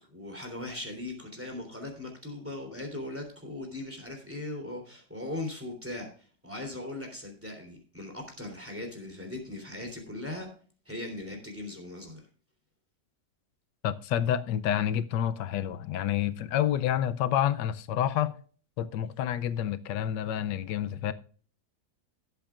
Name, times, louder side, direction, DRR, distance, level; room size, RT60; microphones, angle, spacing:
voice 1, 0.1-10.5 10.8-12.2, left 2 dB, 5° right, 3.2 m, -39 dB
voice 2, 13.8-18.3 18.8-21.1, left 10 dB, 90° left, 1.3 m, -28 dB
19.0 x 8.0 x 2.4 m
omnidirectional pair, 1.9 m